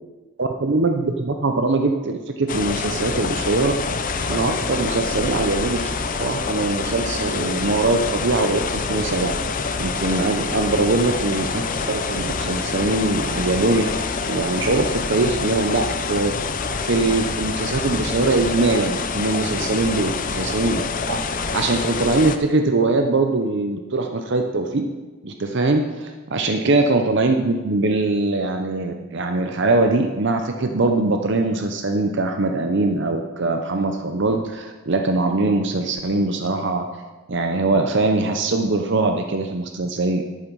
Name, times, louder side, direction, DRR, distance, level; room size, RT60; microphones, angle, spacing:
voice 1, 0.4-3.7 4.2-5.9 6.2-9.3 9.8-16.3 16.8-20.8 21.1-24.8 25.2-36.8 37.3-40.2, right 2 dB, 55° right, 5 dB, 0.7 m, -22 dB
sound 1, 2.5-22.4, left 4 dB, 40° left, 0.6 m, -26 dB
11.0 x 8.8 x 4.7 m, 1.2 s
head